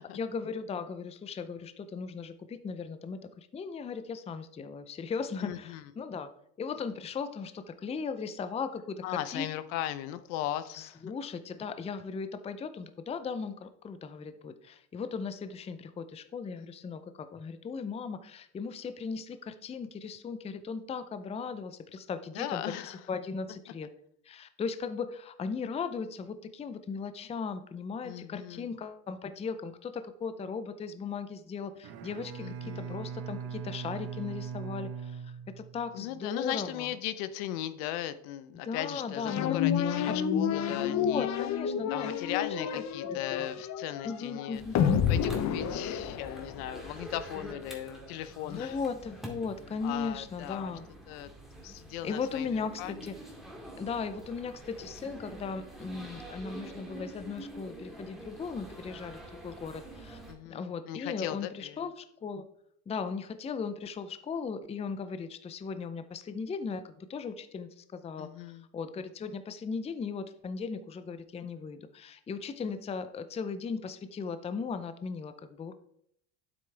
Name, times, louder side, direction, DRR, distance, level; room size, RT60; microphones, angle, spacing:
voice 1, 0.1-6.3 6.6-9.5 10.7-23.9 24.3-36.9 38.6-39.6 40.1-40.2 40.7-43.6 44.0-44.8 48.4-50.9 52.0-53.2 53.8-60.2 60.5-62.4 62.9-68.3 68.7-75.7, left 5 dB, 15° left, 11 dB, 0.5 m, -37 dB
voice 2, 5.4-5.8 9.0-11.1 16.6-16.7 22.3-23.0 28.0-28.7 32.4-33.0 35.9-41.3 41.9-44.6 45.1-48.8 49.8-50.7 51.1-51.3 51.6-53.0 60.3-61.8 68.2-68.7, left 12 dB, 80° left, 13 dB, 0.8 m, -38 dB
Bowed string instrument, 31.7-36.1, right 7 dB, 60° right, 1.1 m, -40 dB
sound 1, 39.3-46.8, left 8 dB, 40° left, 0.8 m, -30 dB
sound 2, 44.5-60.3, right 1 dB, ahead, 2.0 m, -47 dB
9.1 x 7.9 x 3.3 m, 0.71 s
supercardioid pair, 105°, 44 cm